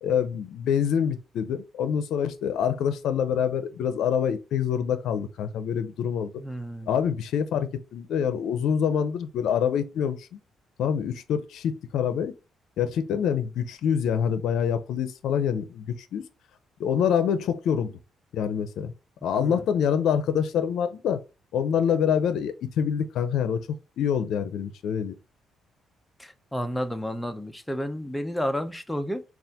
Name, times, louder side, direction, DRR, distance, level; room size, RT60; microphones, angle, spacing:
voice 1, 0.0-6.3 6.9-10.4 10.8-12.3 12.8-16.3 16.8-17.9 18.3-18.9 19.2-21.2 21.5-23.7 24.0-25.1, left 8 dB, 80° left, 0.5 m, -26 dB
voice 2, 6.4-7.0 19.4-19.7 26.2-29.2, equal, 5° left, 0.6 m, -31 dB
4.2 x 2.4 x 3.5 m
cardioid pair, 90°, 0 cm